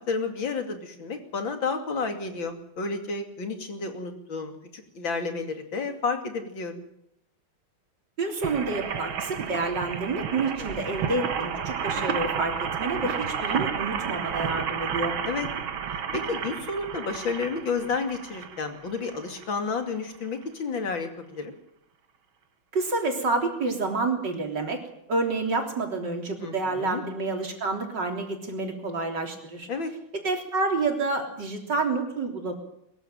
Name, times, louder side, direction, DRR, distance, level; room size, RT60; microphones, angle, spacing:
voice 1, 0.1-6.8 10.6-10.8 15.3-15.5 16.1-21.5 26.4-27.0 29.7-29.9, left 4 dB, 70° left, 6 dB, 3.4 m, -31 dB
voice 2, 8.2-15.2 22.7-24.8 25.1-29.7 30.1-32.5, right 3 dB, 55° right, 3 dB, 4.0 m, -28 dB
sound 1, 8.4-19.5 20.1-20.2 20.4-20.5, right 7 dB, 75° right, 2.3 m, -31 dB
22.5 x 14.5 x 9.1 m, 0.77 s
omnidirectional pair, 2.2 m